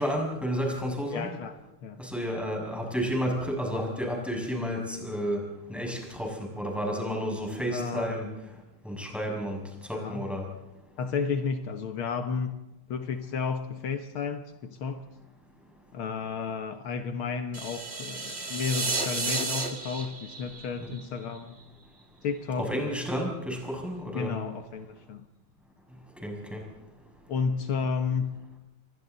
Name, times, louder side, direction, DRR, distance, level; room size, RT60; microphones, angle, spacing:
voice 1, 0.0-1.3 2.0-5.4 5.7-8.3 8.8-9.6 9.9-10.5 20.8-20.9 22.6-24.4 26.2-26.6, equal, ahead, 0 dB, 6.3 m, -31 dB
voice 2, 1.1-2.0 7.7-8.1 9.9-10.3 11.0-12.6 12.9-15.1 15.9-21.6 22.2-22.7 24.1-25.3 27.3-28.3, left 5 dB, 75° left, 7 dB, 2.0 m, -32 dB
sound 1, 17.5-21.6, right 3 dB, 30° right, 2.5 m, -32 dB
28.0 x 22.5 x 4.1 m, 1.0 s
omnidirectional pair, 2.4 m